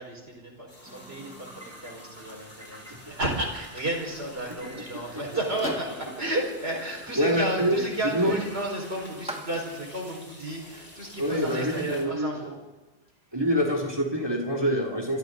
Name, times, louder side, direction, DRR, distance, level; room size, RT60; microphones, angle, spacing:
voice 1, 0.0-12.6, right 1 dB, 80° right, 0 dB, 5.6 m, -32 dB
sound 1, 0.7-12.0, left 1 dB, 65° left, 4.8 m, -48 dB
Microwave oven, 0.9-10.1, equal, 5° right, 1.9 m, -45 dB
voice 2, 7.1-8.4 11.2-12.5 13.3-15.2, equal, 25° right, -1 dB, 2.9 m, -26 dB
28.0 x 26.5 x 4.0 m, 1.1 s
omnidirectional pair, 1.0 m